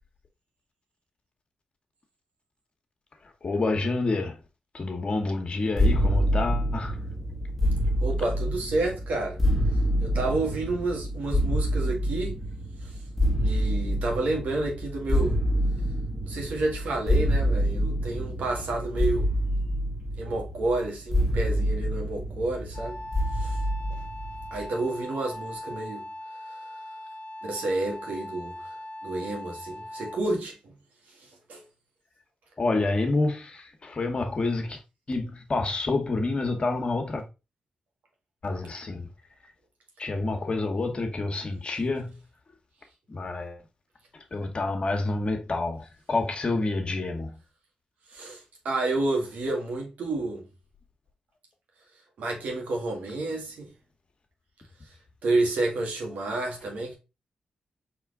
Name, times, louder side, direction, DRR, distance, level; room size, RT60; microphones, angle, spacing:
voice 1, 3.2-4.4 4.7-7.0 32.6-34.8 35.1-37.2 38.4-39.1 39.4-39.5 40.0-42.2 43.1-43.6 44.1-47.4, left 3 dB, 45° left, 1.2 m, -28 dB
Pas de dinosaure, 5.8-24.7, equal, 5° left, 1.3 m, -27 dB
voice 2, 8.0-9.4 10.0-12.4 12.8-12.9 13.4-15.4 16.3-19.3 20.2-23.0 23.3-23.5 24.5-26.1 26.5-26.6 27.4-28.7 29.0-30.7 31.5-31.6 48.1-50.4 52.2-53.7 55.2-57.0, right 2 dB, 75° right, 1.7 m, -30 dB
Wind instrument woodwind instrument, 22.7-30.4, left 1 dB, 65° left, 0.9 m, -40 dB
4.2 x 3.4 x 3.7 m
cardioid pair, 55°, 3 cm